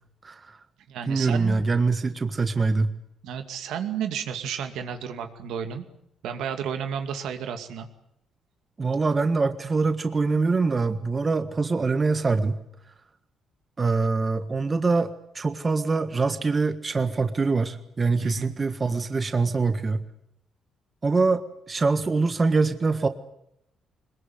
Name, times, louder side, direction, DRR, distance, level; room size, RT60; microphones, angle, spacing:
voice 1, 0.2-0.6 1.1-3.0 8.8-12.6 13.8-20.1 21.0-23.1, right 4 dB, 30° right, 10 dB, 1.6 m, -24 dB
voice 2, 0.9-1.6 3.2-5.8 6.2-7.9 18.2-18.5, right 8 dB, 85° right, 7 dB, 2.4 m, -32 dB
21.5 x 21.0 x 9.4 m, 0.77 s
cardioid pair, 90°, 0 cm